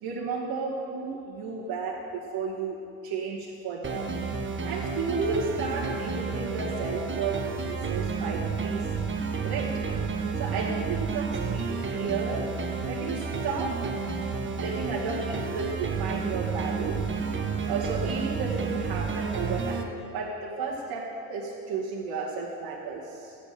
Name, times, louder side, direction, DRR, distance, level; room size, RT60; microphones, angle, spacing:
voice 1, 0.0-2.8 3.0-4.2 4.6-8.9 9.4-9.8 10.3-12.5 12.9-13.8 14.6-17.0 17.7-23.4, right 4 dB, 60° right, -5 dB, 2.1 m, -33 dB
sound 1, 3.8-19.8, right 5 dB, 30° right, 1.4 m, -31 dB
13.5 x 9.6 x 6.9 m, 2.6 s
hypercardioid pair, 70°, 42 cm